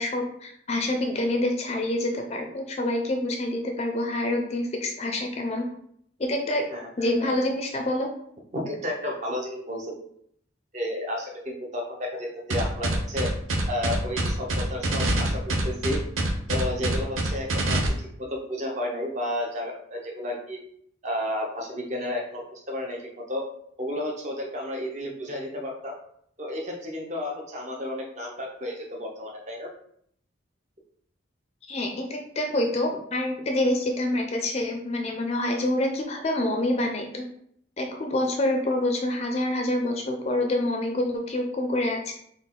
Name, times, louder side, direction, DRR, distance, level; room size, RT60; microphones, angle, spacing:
voice 1, 0.0-5.7 6.2-6.6 7.0-8.1 31.7-37.2 37.8-42.1, left 1 dB, 30° left, 3 dB, 0.4 m, -27 dB
voice 2, 6.7-7.3 8.5-10.1 10.7-13.3 13.7-16.0 16.5-20.6 21.0-23.5 23.8-26.0 26.4-29.7, left 1 dB, 35° right, 0 dB, 0.8 m, -32 dB
sound 1, 12.5-17.9, right 2 dB, 90° right, 0.7 m, -25 dB
4.1 x 2.4 x 3.7 m, 0.69 s
head